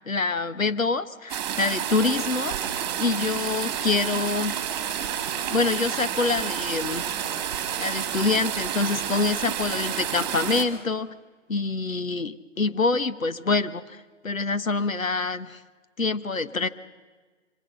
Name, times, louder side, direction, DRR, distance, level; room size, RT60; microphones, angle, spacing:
voice 1, 0.1-2.5 3.0-4.6 5.5-7.1 7.8-11.2 11.5-14.0 14.2-15.6 16.0-16.7, left 4 dB, 80° left, 13 dB, 1.5 m, -26 dB
sound 1, 1.3-10.6, right 9 dB, 20° right, 2.0 m, -30 dB
26.0 x 24.5 x 6.3 m, 1.4 s
figure-of-eight pair, 150°, 40 cm